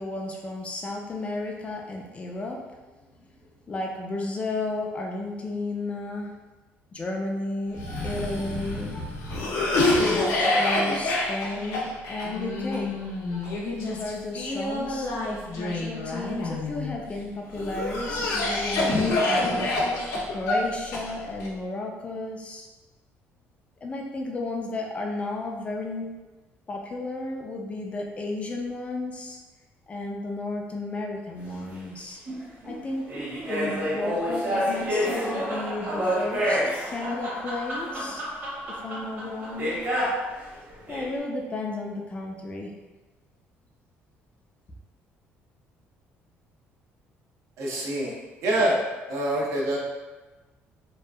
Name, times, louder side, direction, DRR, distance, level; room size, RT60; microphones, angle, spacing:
voice 1, 0.0-2.6 3.2-3.3 3.7-6.3 6.9-9.0 10.1-13.0 13.8-15.1 15.6-19.7 20.3-22.7 23.8-26.1 26.7-29.4 29.9-32.2 32.6-33.1 33.5-38.2 38.7-39.8 40.9-42.7, left 2 dB, 25° left, 1 dB, 0.3 m, -33 dB
Cough, 7.7-17.0 17.5-21.5, left 2 dB, 80° left, 0.6 m, -27 dB
sound 1, 31.4-31.5 32.3-40.3 40.7-41.1, equal, 45° right, 1.0 m, -28 dB
voice 2, 47.6-48.1 48.4-48.8 49.1-49.8, right 1 dB, 70° right, -3 dB, 0.6 m, -25 dB
2.7 x 2.2 x 2.2 m, 1.2 s
cardioid pair, 120°, 5 cm